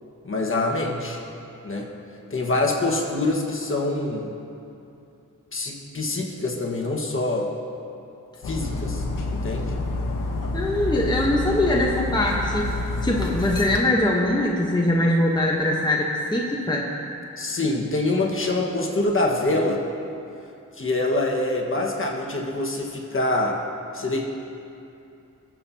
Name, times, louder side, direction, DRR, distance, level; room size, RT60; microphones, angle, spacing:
voice 1, 0.2-1.2 1.6-1.9 2.3-4.3 5.5-7.5 8.4-9.0 9.3-9.7 17.4-19.8 20.8-23.6 23.9-24.3, left 2 dB, 40° left, -1 dB, 1.5 m, -25 dB
Dog, 8.4-13.8, left 2 dB, 85° left, 1.1 m, -28 dB
voice 2, 10.5-12.7 13.0-16.9, left 1 dB, 15° left, -2 dB, 1.0 m, -22 dB
20.0 x 7.4 x 2.8 m, 2.7 s
cardioid pair, 70°, 31 cm